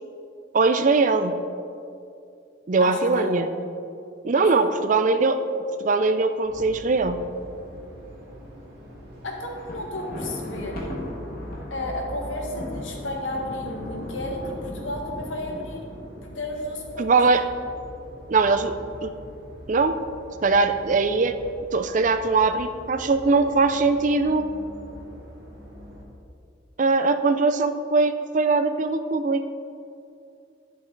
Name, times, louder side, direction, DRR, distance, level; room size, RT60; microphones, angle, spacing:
voice 1, 0.5-1.3 2.7-3.5 4.2-5.4 5.8-7.2 17.0-17.4 18.3-18.7 19.0-19.1 19.7-20.0 20.4-21.4 21.7-24.5 26.8-29.4, right 3 dB, 40° right, 9 dB, 0.4 m, -21 dB
voice 2, 2.8-3.3 4.3-4.7 9.2-11.0 11.7-15.8 16.3-17.1, left 1 dB, 90° left, 0 dB, 1.6 m, -32 dB
sound 1, 6.4-26.1, equal, 55° right, 2.2 m, -43 dB
Thunder, 9.4-16.6, left 1 dB, 50° left, 1.6 m, -37 dB
10.5 x 7.5 x 3.9 m, 2.6 s
head